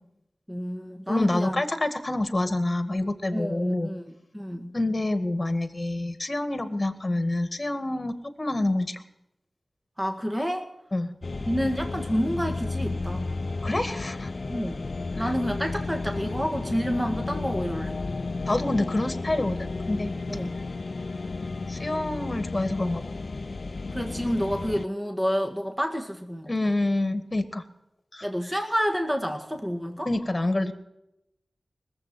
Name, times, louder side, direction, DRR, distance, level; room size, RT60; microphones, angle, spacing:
voice 1, 0.5-1.6 3.3-4.7 10.0-10.7 11.5-13.3 14.5-14.8 15.2-18.0 20.3-20.6 23.9-26.5 28.2-30.1, equal, 15° right, 3 dB, 1.9 m, -29 dB
voice 2, 1.1-3.9 4.7-9.0 10.9-11.1 13.6-14.3 18.5-20.1 21.7-23.1 26.5-27.6 28.1-28.2 30.1-30.7, left 2 dB, 35° left, 9 dB, 2.0 m, -27 dB
sound 1, 11.2-24.9, left 3 dB, 60° left, 0.5 m, -32 dB
19.5 x 7.9 x 9.3 m, 0.85 s
cardioid pair, 45°, 0 cm